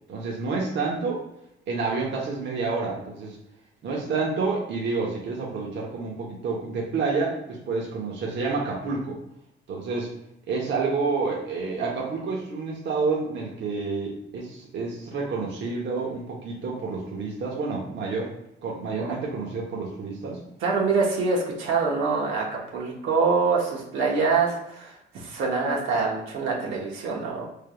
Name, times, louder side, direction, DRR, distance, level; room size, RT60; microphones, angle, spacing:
voice 1, 0.1-1.2 1.7-3.4 3.8-9.2 9.7-10.1 10.5-18.3 18.6-20.4, right 4 dB, 65° right, -3 dB, 0.9 m, -29 dB
voice 2, 20.6-27.4, right 4 dB, 85° right, -3 dB, 1.1 m, -25 dB
4.5 x 3.3 x 2.2 m, 0.80 s
cardioid pair, 90°, 20 cm